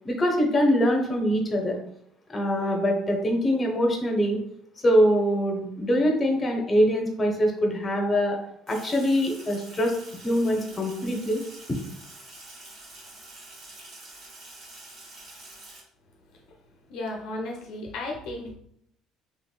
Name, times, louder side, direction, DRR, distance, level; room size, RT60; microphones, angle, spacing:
voice 1, 0.0-1.8 2.3-4.4 4.8-8.4 8.7-9.9 10.2-11.4, equal, 25° left, 2 dB, 0.8 m, -23 dB
Sink (filling or washing), 8.7-15.8, right 2 dB, 60° right, 1.2 m, -46 dB
voice 2, 16.9-18.5, left 2 dB, 70° left, 0 dB, 0.5 m, -34 dB
3.0 x 2.9 x 2.3 m, 0.73 s
supercardioid pair, 85°, 0 cm